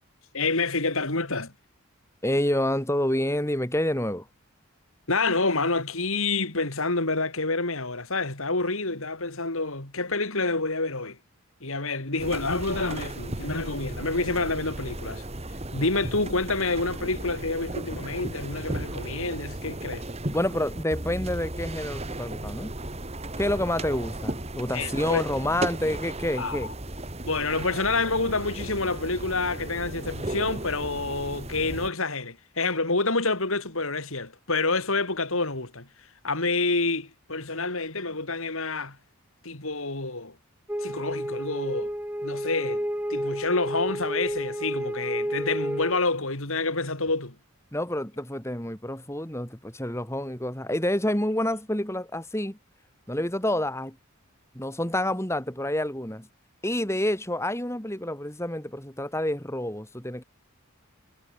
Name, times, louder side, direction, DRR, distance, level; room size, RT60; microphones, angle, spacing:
voice 1, 0.3-1.5 5.1-11.2 11.6-15.2 15.7-20.0 24.7-25.2 26.4-26.7 27.2-35.9 36.2-39.0 39.4-40.3 40.8-41.9 42.2-42.8 43.1-47.4, left 3 dB, 65° left, 3.3 m, -28 dB
voice 2, 2.2-4.3 20.3-22.7 23.4-26.7 47.7-52.6 53.1-54.0 54.5-56.3 56.6-60.2, left 1 dB, 10° left, 3.3 m, -28 dB
sound 1, 12.2-31.9, right 1 dB, 30° right, 2.4 m, -35 dB
sound 2, 40.7-46.0, equal, 10° right, 2.3 m, -31 dB
head